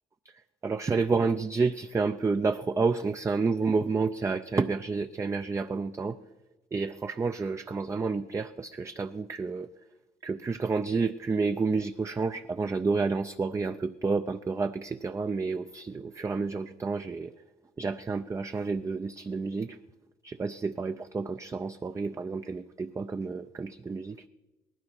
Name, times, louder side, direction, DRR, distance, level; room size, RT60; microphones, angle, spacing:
voice 1, 0.6-6.2 6.7-9.7 10.2-17.3 17.8-19.8 20.2-24.2, right 4 dB, 15° right, 8 dB, 0.4 m, -30 dB
18.5 x 12.5 x 5.9 m, 1.1 s
cardioid pair, 110°, 17 cm